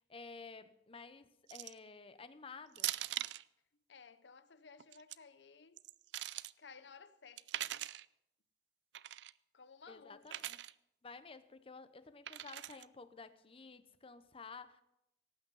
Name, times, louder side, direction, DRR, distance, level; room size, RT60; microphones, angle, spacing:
voice 1, 0.0-2.9 9.9-10.6 11.0-14.8, left 4 dB, 30° left, 0.8 m, -52 dB
sound 1, 1.5-1.9 2.8-3.4 4.8-5.2 5.8-6.5 7.4-8.0 8.9-9.3 10.3-10.7 12.3-12.8, right 14 dB, 70° right, 0.4 m, -41 dB
voice 2, 3.9-5.8 6.6-7.7 9.5-10.4, left 5 dB, 75° left, 0.7 m, -57 dB
18.5 x 8.6 x 5.5 m
head